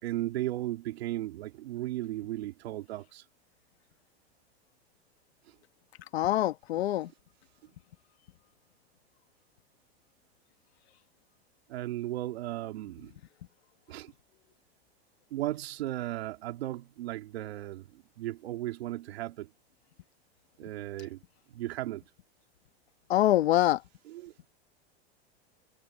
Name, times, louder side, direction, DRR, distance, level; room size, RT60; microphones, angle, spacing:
voice 1, 0.0-3.2 5.4-5.5 11.7-13.1 13.9-14.1 15.3-19.5 20.6-21.2 21.5-22.0 24.1-24.3, right 15 dB, 75° right, 2.6 m, -36 dB
voice 2, 6.1-7.1 23.1-23.8, left 14 dB, 80° left, 1.2 m, -25 dB
hypercardioid pair, 120°, 31 cm